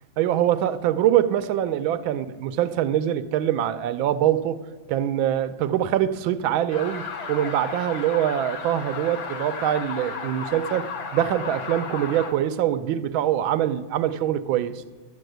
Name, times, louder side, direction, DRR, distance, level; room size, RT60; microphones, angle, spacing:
voice 1, 0.2-4.6 4.9-14.8, right 11 dB, 80° right, 1.4 m, -24 dB
sound 1, 6.7-12.3, left 5 dB, 75° left, 2.1 m, -34 dB
12.0 x 8.2 x 7.8 m
omnidirectional pair, 2.2 m